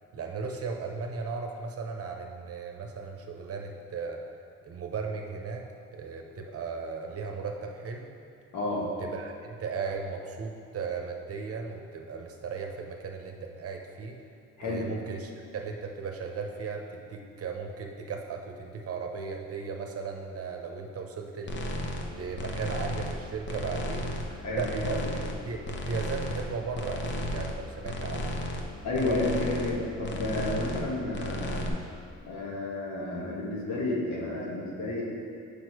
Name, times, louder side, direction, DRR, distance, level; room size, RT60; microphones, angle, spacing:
voice 1, 0.1-4.3 4.6-5.7 5.9-8.1 9.0-14.2 14.6-21.7 22.0-24.1 24.5-28.4, right 5 dB, 50° right, 2 dB, 0.9 m, -36 dB
sound 1, 21.5-22.1 22.4-23.2 23.5-24.3 24.6-25.4 25.6-26.4 26.7-27.6 27.8-28.6 28.9-29.8 30.0-30.9 31.1-31.7, left 1 dB, 40° left, 0.8 m, -33 dB
voice 2, 24.4-25.1 28.8-31.7 32.3-35.0, left 2 dB, 65° left, -4 dB, 1.8 m, -31 dB
6.3 x 5.3 x 4.7 m, 2.4 s
cardioid pair, 90°, 30 cm